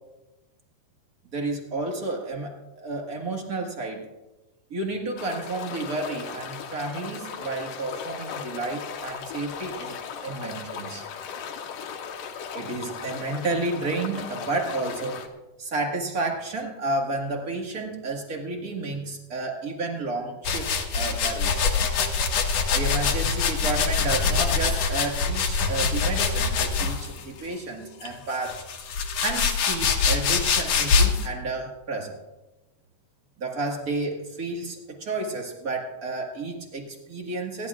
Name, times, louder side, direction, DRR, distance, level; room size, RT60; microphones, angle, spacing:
voice 1, 1.3-4.1 4.7-10.0 10.2-11.0 12.5-15.2 15.6-21.7 22.7-28.6 29.2-32.2 33.4-37.7, right 2 dB, 35° right, 1 dB, 1.5 m, -31 dB
sound 1, 5.2-15.3, left 7 dB, 80° left, 2.7 m, -37 dB
sound 2, 20.4-27.2 28.0-31.3, left 5 dB, 60° left, 2.1 m, -24 dB
27.5 x 11.0 x 2.4 m, 1.0 s
omnidirectional pair, 3.8 m